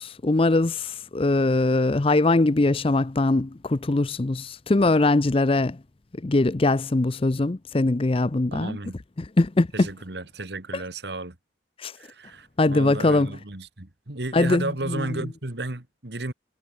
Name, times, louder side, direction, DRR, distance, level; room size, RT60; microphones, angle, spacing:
voice 1, 0.0-5.8 6.2-8.8 9.2-9.9 10.7-10.8 11.8-11.9 12.6-13.3 14.3-15.1, left 2 dB, 30° left, 0.5 m, -22 dB
voice 2, 8.5-9.0 9.7-11.4 12.0-16.3, right 2 dB, 60° right, 2.0 m, -33 dB
head